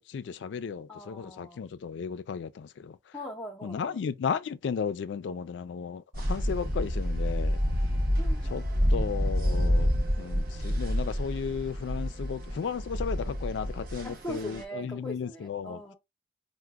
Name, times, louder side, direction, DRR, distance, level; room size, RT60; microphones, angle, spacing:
voice 1, 0.0-3.0 3.6-7.6 8.4-8.6 8.9-15.8, left 6 dB, 85° left, 0.3 m, -34 dB
voice 2, 0.9-1.6 3.1-4.0 8.2-8.7 9.4-9.7 14.0-15.9, equal, 15° left, 0.5 m, -41 dB
sound 1, 6.1-14.6, equal, 55° right, 0.7 m, -28 dB
4.8 x 2.1 x 2.2 m
head